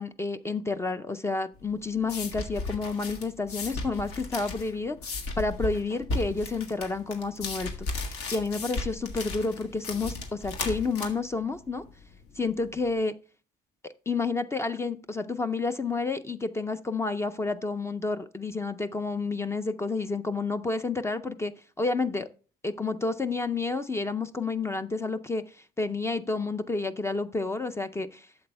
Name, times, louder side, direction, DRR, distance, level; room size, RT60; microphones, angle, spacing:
voice 1, 0.0-11.8 12.4-13.1 13.8-21.5 21.8-22.3 22.6-25.4 25.8-28.3, left 3 dB, 15° left, 0.5 m, -30 dB
sound 1, 1.6-12.9, left 3 dB, 85° left, 1.7 m, -36 dB
12.0 x 7.7 x 2.2 m
cardioid pair, 110°, 17 cm